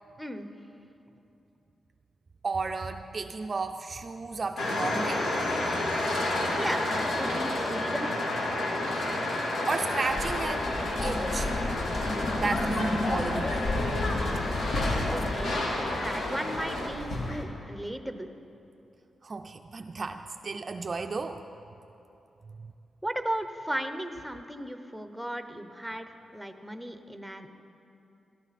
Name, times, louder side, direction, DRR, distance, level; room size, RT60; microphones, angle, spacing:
voice 1, 2.4-5.3 9.0-9.2 9.7-11.5 12.4-13.7 19.2-21.4 22.5-22.7, right 4 dB, 35° right, 6 dB, 0.4 m, -33 dB
sound 1, 4.6-16.9, left 1 dB, 85° left, 2.0 m, -30 dB
voice 2, 6.6-8.1 15.1-15.6 15.9-18.3 23.0-27.6, right 1 dB, ahead, 8 dB, 0.8 m, -36 dB
sound 2, 10.1-17.4, left 1 dB, 60° left, 1.7 m, -35 dB
sound 3, 10.1-15.3, left 2 dB, 35° left, 0.6 m, -33 dB
17.5 x 13.5 x 4.2 m, 2.9 s
wide cardioid pair, 125°, 0 cm